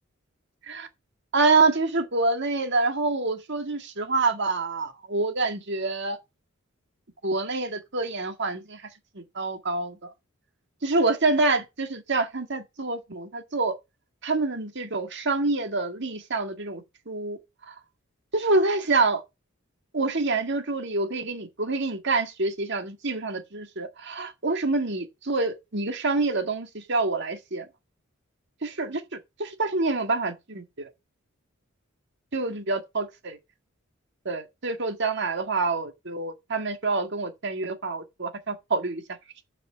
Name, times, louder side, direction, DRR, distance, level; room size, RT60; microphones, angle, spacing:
voice 1, 1.3-6.2 7.2-8.9 9.1-10.1 10.8-13.7 14.2-17.4 17.7-17.8 18.3-19.2 19.9-27.7 28.6-30.9 32.3-33.4 34.3-39.0, right 3 dB, 60° right, 1.8 m, -27 dB
7.5 x 5.5 x 7.1 m
head